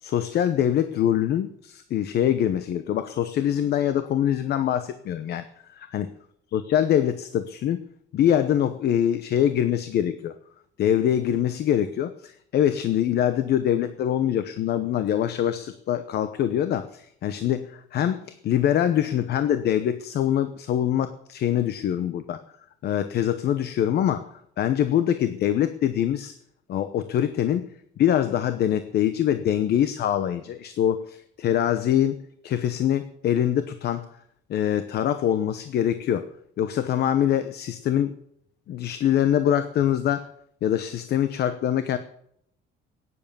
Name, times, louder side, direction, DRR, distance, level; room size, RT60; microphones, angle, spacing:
voice 1, 0.0-6.1 6.5-7.8 8.1-10.4 10.8-22.4 22.8-26.3 26.7-27.7 28.0-34.1 34.5-36.3 36.6-38.1 38.7-40.3 40.6-42.0, left 10 dB, 60° left, 12 dB, 0.9 m, -24 dB
16.0 x 9.9 x 7.0 m, 0.72 s
cardioid pair, 150°, 19 cm